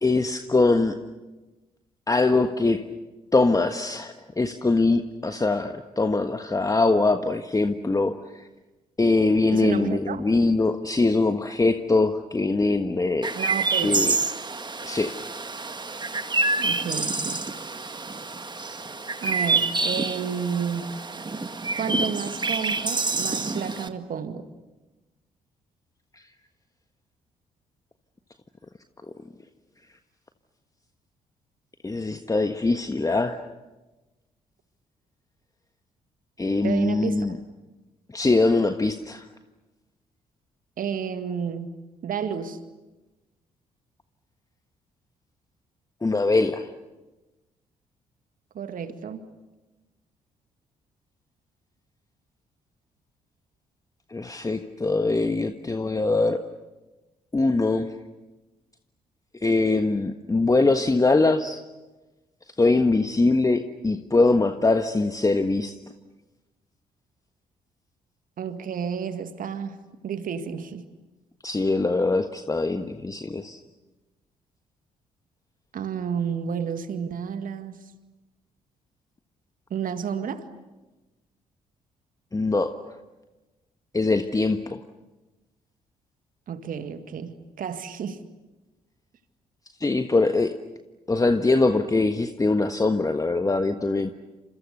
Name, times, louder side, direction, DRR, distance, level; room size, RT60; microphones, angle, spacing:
voice 1, 0.0-0.9 2.1-2.8 3.3-8.1 9.0-13.3 13.8-14.2 14.8-15.1 31.8-33.5 36.4-37.4 38.1-39.2 46.0-46.7 54.1-56.4 57.3-57.9 59.4-61.6 62.6-65.7 71.4-73.6 82.3-82.7 83.9-84.8 89.8-90.5 91.1-94.1, left 3 dB, 20° left, 8 dB, 1.4 m, -22 dB
voice 2, 9.5-10.3 13.3-14.1 16.6-17.4 19.2-20.9 21.8-24.5 36.6-37.3 40.8-41.7 42.0-42.6 48.5-49.2 68.4-70.8 75.7-77.8 79.7-80.5 86.5-88.2, right 7 dB, 50° right, 10 dB, 2.0 m, -31 dB
Chirp tweet, 13.2-23.9, right 3 dB, 25° right, 1.9 m, -27 dB
29.5 x 27.5 x 6.8 m, 1.1 s
figure-of-eight pair, 40°, 18 cm